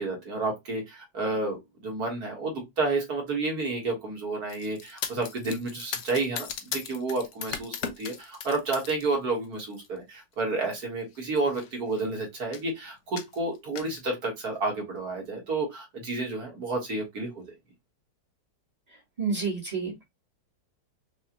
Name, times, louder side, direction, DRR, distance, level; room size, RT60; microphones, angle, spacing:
voice 1, 0.0-17.4, right 3 dB, 55° right, 1.9 m, -30 dB
sound 1, 4.5-9.0 9.4-9.9 10.7-10.8 11.1-11.2 11.5-12.1 12.5-12.7 13.2-14.0, left 8 dB, 75° left, 0.6 m, -38 dB
voice 2, 19.2-20.0, right 5 dB, 25° right, 1.2 m, -29 dB
5.5 x 2.2 x 2.8 m
omnidirectional pair, 2.0 m